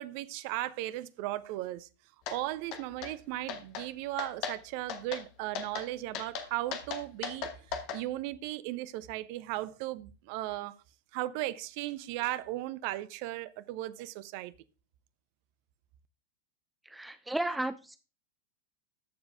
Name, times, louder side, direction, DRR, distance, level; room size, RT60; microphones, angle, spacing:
voice 1, 0.0-1.9 2.3-10.8 11.1-14.5, right 16 dB, 45° right, 0.6 m, -36 dB
sound 1, 2.3-2.4 2.7-3.1 3.5-3.9 4.2-4.6 4.9-5.2 5.5-5.9 6.1-8.0, left 7 dB, 40° left, 1.3 m, -37 dB
voice 2, 16.9-18.0, right 1 dB, 5° right, 0.4 m, -34 dB
13.5 x 4.7 x 3.4 m
figure-of-eight pair, 90°, 0 cm